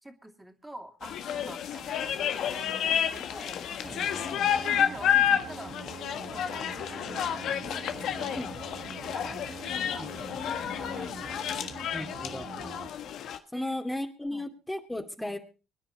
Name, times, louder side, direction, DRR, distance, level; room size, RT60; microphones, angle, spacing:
voice 1, 0.0-4.0 4.5-6.0 6.3-9.4 9.9-10.2 10.7-11.7 12.5-12.9 13.5-13.7 14.3-14.5 15.2-15.4, right 1 dB, 10° right, 5 dB, 3.0 m, -47 dB
sound 1, 1.0-13.4, left 9 dB, 70° left, 1.6 m, -30 dB
sound 2, 3.8-12.9, right 7 dB, 55° right, 1.2 m, -45 dB
voice 2, 11.9-12.5 13.5-15.4, left 1 dB, 10° left, 3 dB, 2.6 m, -35 dB
25.0 x 10.0 x 4.3 m, 0.35 s
hypercardioid pair, 55°, 0 cm